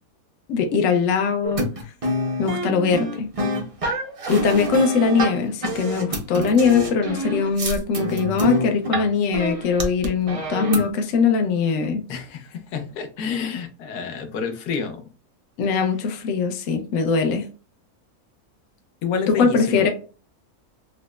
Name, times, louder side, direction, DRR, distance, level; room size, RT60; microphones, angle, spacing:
voice 1, 0.5-1.7 2.4-3.3 4.3-12.0 15.6-17.5 19.3-19.9, left 5 dB, 65° left, 1.0 m, -21 dB
sound 1, 1.4-9.1 9.3-10.9, equal, 50° right, 0.4 m, -26 dB
voice 2, 12.1-15.0 19.0-19.8, left 6 dB, 85° left, 1.2 m, -29 dB
5.0 x 2.1 x 2.2 m
omnidirectional pair, 1.6 m